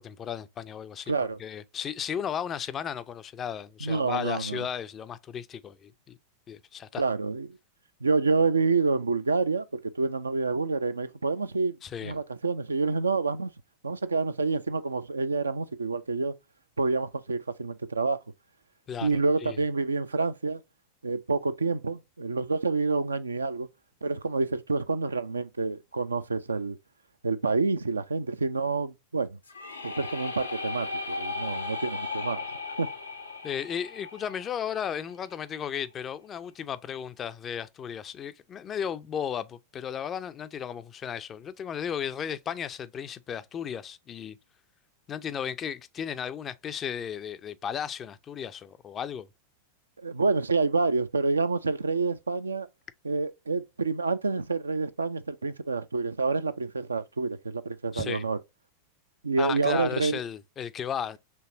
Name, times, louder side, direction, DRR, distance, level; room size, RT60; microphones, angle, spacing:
voice 1, 0.0-1.1 1.4-6.2 6.5-7.0 11.8-12.1 18.9-19.6 33.4-44.4 45.1-49.3 57.9-58.3 59.4-61.2, left 8 dB, 25° left, 0.4 m, -35 dB
voice 2, 1.1-1.4 3.8-4.7 7.0-7.6 8.0-13.5 13.8-16.3 16.8-18.2 19.0-20.6 21.0-23.7 24.0-26.8 27.2-29.4 29.8-32.9 50.0-52.7 53.0-58.4 59.2-60.2, right 4 dB, 75° right, 0.4 m, -28 dB
sound 1, 29.5-35.3, left 4 dB, 80° left, 0.7 m, -36 dB
4.6 x 3.2 x 2.5 m
figure-of-eight pair, 90°, 0 cm